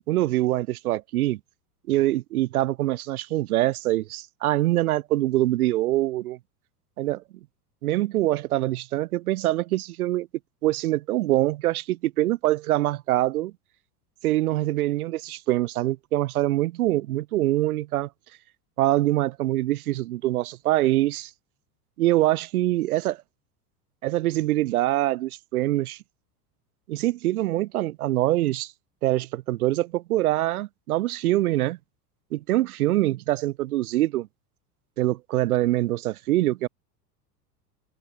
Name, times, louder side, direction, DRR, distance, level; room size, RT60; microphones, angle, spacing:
voice 1, 0.1-1.4 1.9-6.4 7.0-7.2 7.8-10.3 10.6-13.5 14.2-18.1 18.8-21.3 22.0-23.2 24.0-26.0 26.9-28.7 29.0-31.8 32.3-34.3 35.0-36.7, right 16 dB, 65° right, 0.6 m, -24 dB
figure-of-eight pair, 85°, 48 cm